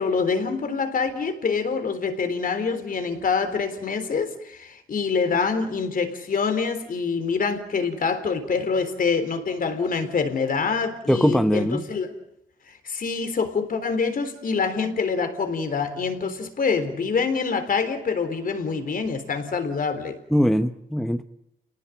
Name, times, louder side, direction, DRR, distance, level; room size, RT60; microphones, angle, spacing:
voice 1, 0.0-12.1 12.8-20.2, left 5 dB, 45° left, 3.8 m, -25 dB
voice 2, 11.1-11.9 20.3-21.2, equal, ahead, 0.9 m, -21 dB
29.5 x 19.5 x 9.0 m
cardioid pair, 90°, 20 cm